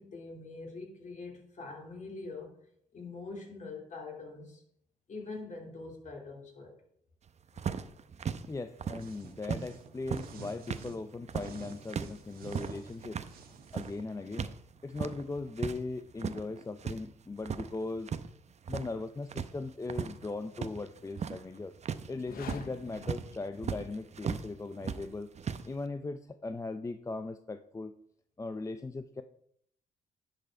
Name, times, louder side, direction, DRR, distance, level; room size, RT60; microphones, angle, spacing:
voice 1, 0.0-2.5 2.9-4.6 5.1-6.7, left 3 dB, 50° left, 0 dB, 3.2 m, -44 dB
sound 1, 7.6-9.7 10.0-14.6 14.8-15.8 16.1-17.0 17.3-18.3 18.5-19.0 19.3-24.5 24.8-25.7, right 7 dB, 45° right, 0.7 m, -37 dB
voice 2, 8.5-13.2 13.7-14.5 14.8-18.1 18.7-21.7 22.1-25.3 25.6-27.9 28.4-29.2, left 3 dB, 20° left, 10 dB, 0.6 m, -39 dB
sound 2, 9.0-11.0 11.3-14.0, right 5 dB, 70° right, 1.5 m, -50 dB
sound 3, 22.1-24.2, left 8 dB, 65° left, 0.7 m, -48 dB
10.5 x 5.3 x 4.5 m, 0.68 s
supercardioid pair, 65°, 16 cm